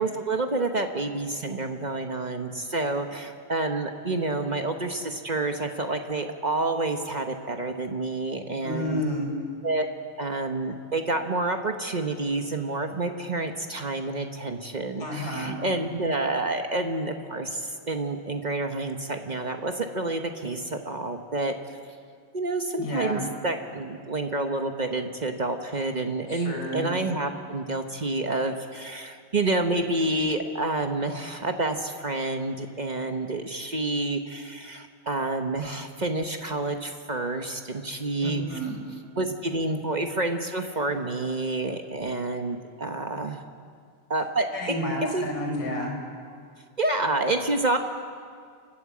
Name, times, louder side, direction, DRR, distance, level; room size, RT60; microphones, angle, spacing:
voice 1, 0.0-9.0 9.6-9.9 10.2-21.8 22.3-38.6 39.2-43.4 44.1-44.5 45.1-45.2 46.8-47.8, right 2 dB, 50° right, 5 dB, 0.5 m, -28 dB
voice 2, 8.6-9.3 15.0-15.5 22.8-23.3 26.3-26.9 38.2-38.8 44.5-45.9, equal, 50° left, 1 dB, 6.4 m, -30 dB
29.5 x 12.0 x 8.5 m, 2.1 s
omnidirectional pair, 2.4 m